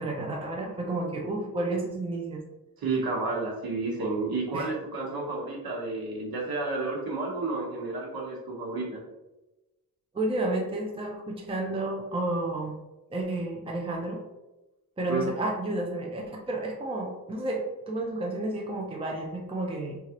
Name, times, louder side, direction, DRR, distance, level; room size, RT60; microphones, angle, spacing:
voice 1, 0.0-2.4 4.5-4.7 10.1-12.8 13.1-14.2 15.0-20.0, right 2 dB, 15° right, 0 dB, 0.5 m, -31 dB
voice 2, 2.8-9.0 15.1-15.2, right 3 dB, 75° right, -3 dB, 1.2 m, -31 dB
4.6 x 2.4 x 2.8 m, 1.0 s
wide cardioid pair, 150°, 36 cm